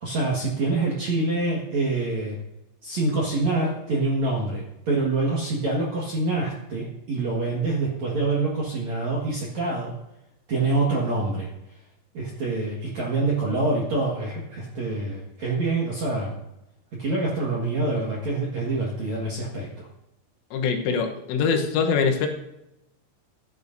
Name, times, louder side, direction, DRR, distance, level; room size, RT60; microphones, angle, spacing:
voice 1, 0.0-2.4 2.8-9.9 10.5-11.5 12.1-16.3 17.0-19.9, right 2 dB, 60° right, -4 dB, 1.9 m, -26 dB
voice 2, 20.5-22.3, left 5 dB, 80° left, 4 dB, 3.6 m, -23 dB
14.5 x 10.0 x 2.7 m, 0.89 s
omnidirectional pair, 5.7 m